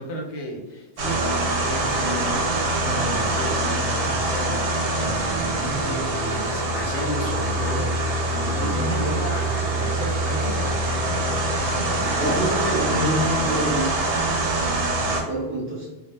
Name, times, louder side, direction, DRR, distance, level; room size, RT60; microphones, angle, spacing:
voice 1, 0.0-12.4, equal, 80° left, 0 dB, 0.9 m, -33 dB
sound 1, 1.0-15.2, right 2 dB, 65° right, 0.3 m, -24 dB
voice 2, 8.4-8.7 12.1-14.0 15.2-15.9, equal, 15° right, -5 dB, 0.7 m, -26 dB
2.1 x 2.1 x 3.1 m, 1.0 s
omnidirectional pair, 1.2 m